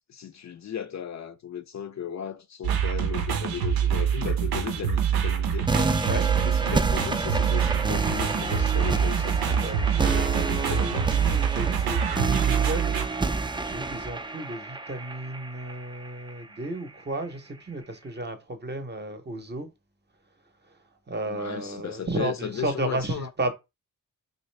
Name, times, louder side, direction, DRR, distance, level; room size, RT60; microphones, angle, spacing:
voice 1, 0.1-5.7 6.4-9.4 10.0-11.1 21.3-23.3, left 8 dB, 50° left, 0.4 m, -36 dB
sound 1, 2.6-13.1, right 8 dB, 90° right, 0.6 m, -25 dB
sound 2, 5.7-16.6, right 3 dB, 15° right, 0.3 m, -29 dB
voice 2, 9.5-19.7 20.6-20.8 21.1-23.5, right 2 dB, 30° right, 0.7 m, -33 dB
3.1 x 2.6 x 3.2 m
cardioid pair, 60°, 35 cm